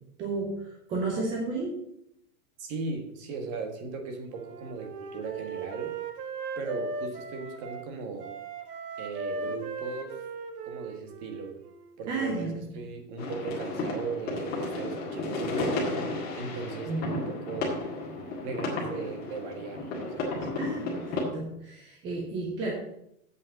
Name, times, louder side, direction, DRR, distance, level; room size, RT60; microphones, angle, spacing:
voice 1, 0.2-1.8 12.1-12.8 16.9-17.0 20.6-22.7, right 3 dB, 10° right, -1 dB, 0.5 m, -32 dB
voice 2, 2.6-5.9 6.6-8.3 9.0-10.2 10.6-11.5 12.0-17.8 18.4-19.9 20.1-20.5, right 4 dB, 30° right, 5 dB, 1.5 m, -37 dB
Wind instrument woodwind instrument, 4.3-7.9 8.2-12.0, right 4 dB, 90° right, 1.5 m, -38 dB
sound 1, 13.2-21.2, left 2 dB, 20° left, 2.0 m, -33 dB
8.1 x 5.6 x 7.5 m, 0.77 s
supercardioid pair, 165°, 46 cm